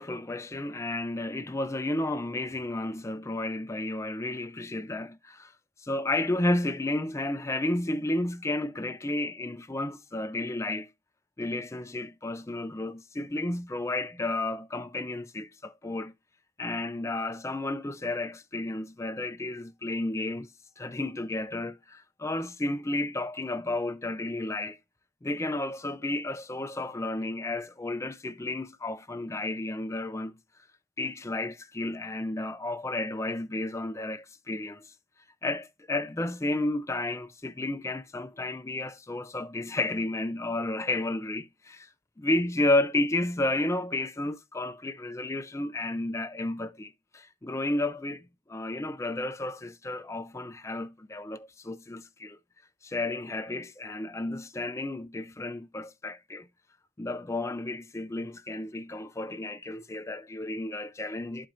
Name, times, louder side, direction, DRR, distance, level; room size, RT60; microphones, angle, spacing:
voice 1, 0.0-5.5 5.8-10.9 11.4-16.1 16.6-20.5 20.8-24.8 25.2-30.4 31.0-34.9 35.4-41.9 42.2-52.4 52.8-56.5 57.0-61.5, left 2 dB, 15° left, 0.4 m, -32 dB
12.0 x 4.5 x 2.4 m
head